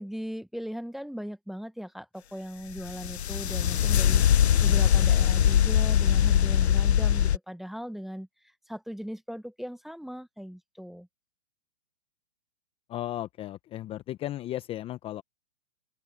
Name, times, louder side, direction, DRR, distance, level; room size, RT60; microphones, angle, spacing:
voice 1, 0.0-8.3 8.7-11.1, equal, ahead, 1.1 m, -38 dB
sound 1, 2.8-7.4, left 9 dB, 85° left, 0.6 m, -22 dB
voice 2, 12.9-15.2, left 13 dB, 15° left, 0.9 m, -35 dB
open air
hypercardioid pair, 130°, 32 cm